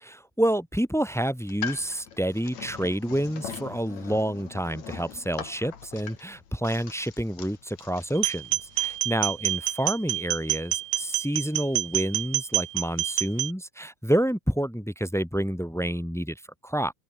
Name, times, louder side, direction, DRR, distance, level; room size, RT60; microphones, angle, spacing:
voice 1, 0.0-8.5 8.8-16.9, right 1 dB, ahead, 1.0 m, -28 dB
sound 1, 1.4-9.0, left 8 dB, 65° left, 3.6 m, -41 dB
sound 2, 8.2-13.5, right 16 dB, 90° right, 2.3 m, -27 dB
omnidirectional pair, 3.5 m